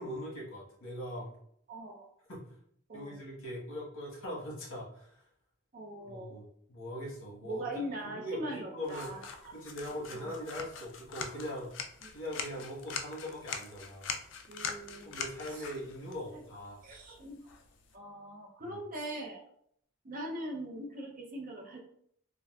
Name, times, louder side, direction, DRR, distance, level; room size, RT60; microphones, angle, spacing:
voice 1, 0.0-1.3 2.3-2.4 2.9-5.2 6.0-7.7 8.0-9.1 9.5-11.7 12.1-14.1 15.0-16.8 18.6-18.8, equal, 75° left, -4 dB, 1.1 m, -41 dB
voice 2, 1.7-2.1 2.9-3.2 5.7-6.4 7.4-9.6 10.1-10.3 12.0-12.1 14.5-15.1 15.5-15.6 16.3-16.4 16.8-17.4 17.9-19.4 20.0-21.8, right 1 dB, 40° right, 0 dB, 0.5 m, -41 dB
sound 1, 8.9-18.0, left 6 dB, 55° left, 0.3 m, -43 dB
3.5 x 2.1 x 2.3 m, 0.66 s
head